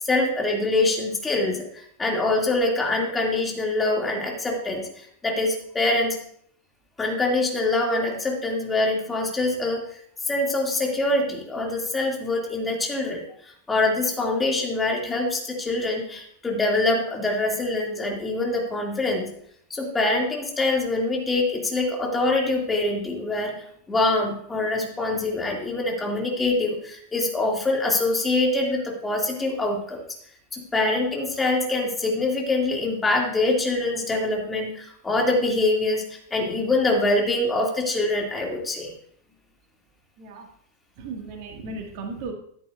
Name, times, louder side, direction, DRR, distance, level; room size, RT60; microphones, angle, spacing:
voice 1, 0.0-6.2 7.0-9.8 10.3-19.3 19.7-30.0 30.5-38.9, left 2 dB, 15° left, 0 dB, 2.6 m, -24 dB
voice 2, 41.0-42.3, right 3 dB, 45° right, 1 dB, 2.0 m, -35 dB
13.5 x 10.0 x 2.6 m, 0.65 s
figure-of-eight pair, 90°, 0 cm